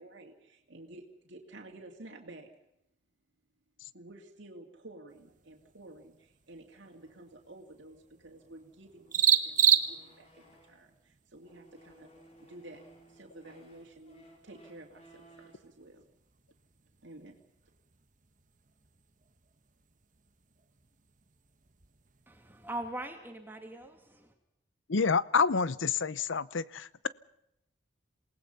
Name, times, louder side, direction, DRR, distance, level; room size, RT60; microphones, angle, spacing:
voice 1, 0.0-2.5 3.9-12.1 12.4-16.0 17.0-17.4, right 2 dB, 65° right, 0 dB, 2.7 m, -52 dB
sound 1, 5.1-22.8, right 9 dB, 40° right, 1.4 m, -36 dB
sound 2, 6.8-11.0 11.4-15.7, right 1 dB, 30° left, 5.5 m, -60 dB
voice 2, 22.3-24.3, right 1 dB, 10° right, 3 dB, 2.4 m, -41 dB
voice 3, 24.9-26.9, left 5 dB, 70° left, 18 dB, 0.7 m, -28 dB
27.5 x 19.0 x 5.6 m, 0.81 s
head